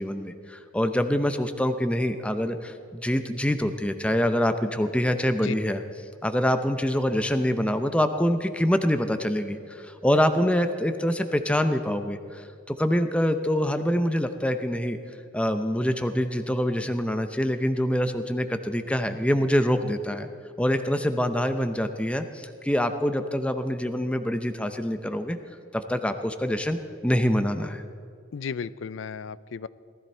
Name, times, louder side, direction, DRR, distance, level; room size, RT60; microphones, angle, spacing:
voice 1, 0.0-5.8 6.2-15.0 15.3-20.3 20.6-25.4 25.7-27.8, equal, 5° left, 8 dB, 0.6 m, -25 dB
voice 2, 28.3-29.7, left 6 dB, 65° left, 18 dB, 0.4 m, -34 dB
18.5 x 13.5 x 4.4 m, 2.5 s
head